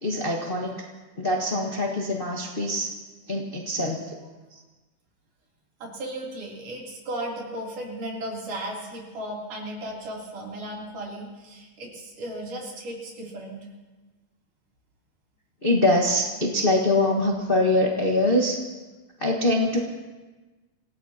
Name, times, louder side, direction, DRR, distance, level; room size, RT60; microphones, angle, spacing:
voice 1, 0.0-0.7 1.2-2.9 3.3-4.1 15.6-18.6 19.2-19.8, left 1 dB, 65° left, -1 dB, 0.5 m, -23 dB
voice 2, 5.8-13.7, right 1 dB, 70° right, -3 dB, 4.8 m, -35 dB
27.5 x 17.5 x 2.9 m, 1.2 s
omnidirectional pair, 3.8 m